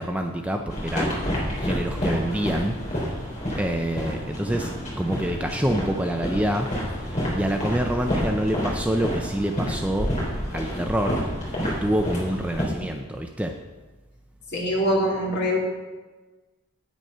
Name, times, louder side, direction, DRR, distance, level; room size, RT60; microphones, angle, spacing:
voice 1, 0.0-2.8 3.6-4.7 5.0-6.7 7.0-10.1 10.5-11.2 11.6-13.5, right 1 dB, 5° right, 4 dB, 0.4 m, -27 dB
sound 1, 0.7-12.6, equal, 30° left, 3.6 m, -29 dB
voice 2, 14.5-15.6, equal, 50° left, -3 dB, 2.5 m, -23 dB
9.2 x 8.7 x 5.5 m, 1.3 s
head